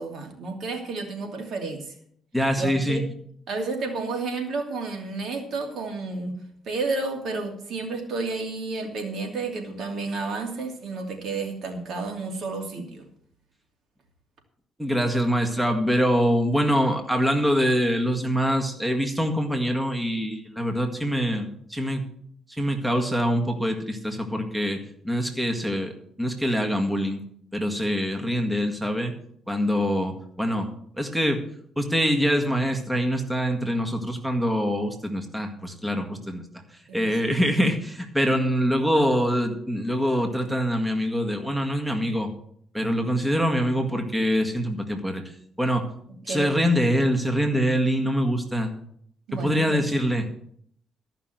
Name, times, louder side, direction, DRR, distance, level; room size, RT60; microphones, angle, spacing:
voice 1, 0.0-1.9 2.5-3.0 3.5-6.3 6.6-13.0 36.9-37.1 46.3-46.5 49.3-49.8, right 3 dB, 65° right, 3 dB, 2.7 m, -31 dB
voice 2, 2.3-3.0 14.8-22.0 22.6-25.9 26.2-27.2 27.5-29.1 29.5-30.7 31.0-31.4 31.8-36.4 36.9-42.3 42.7-45.2 45.6-45.9 46.3-48.7 49.4-50.3, equal, 5° right, 4 dB, 1.9 m, -24 dB
14.0 x 5.9 x 7.9 m, 0.65 s
cardioid pair, 90°, 0 cm